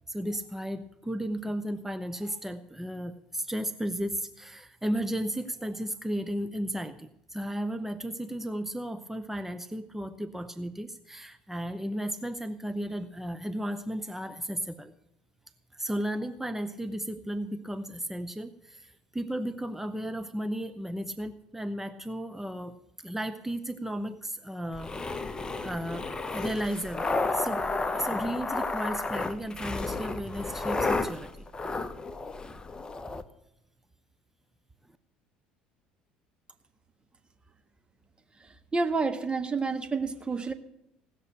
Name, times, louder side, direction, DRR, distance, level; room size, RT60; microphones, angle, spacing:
voice 1, 0.1-14.9 15.7-22.8 23.0-27.1 27.3-27.7 27.9-31.5, equal, 5° right, 10 dB, 0.8 m, -34 dB
sound 1, 24.7-33.2, left 3 dB, 20° left, 0.9 m, -32 dB
voice 2, 38.7-40.5, right 4 dB, 25° right, 8 dB, 1.5 m, -29 dB
17.5 x 6.7 x 8.5 m, 0.83 s
hypercardioid pair, 60°, 4 cm